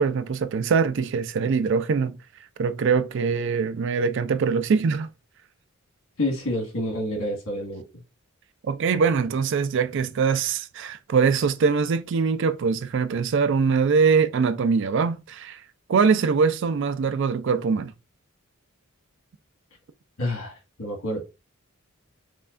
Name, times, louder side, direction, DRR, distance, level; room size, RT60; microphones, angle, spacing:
voice 1, 0.0-2.2 2.6-5.1 8.7-15.6 15.9-17.9, right 5 dB, 60° right, 0.4 m, -23 dB
voice 2, 6.2-7.8 20.2-21.2, left 1 dB, 75° left, 1.5 m, -28 dB
5.5 x 2.3 x 2.4 m
head